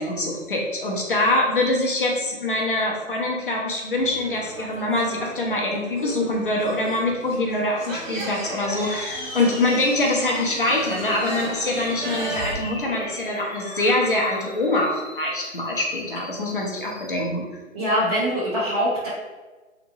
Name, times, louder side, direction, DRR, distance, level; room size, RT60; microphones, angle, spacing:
voice 1, 0.0-17.4, left 2 dB, 40° left, -1 dB, 0.5 m, -24 dB
sound 1, 4.0-12.6, right 2 dB, 70° right, 0.8 m, -36 dB
sound 2, 8.8-17.2, left 1 dB, 75° left, 0.8 m, -38 dB
voice 2, 17.7-19.1, equal, 25° right, -13 dB, 1.2 m, -23 dB
2.8 x 2.0 x 2.7 m, 1.2 s
figure-of-eight pair, 155°, 41 cm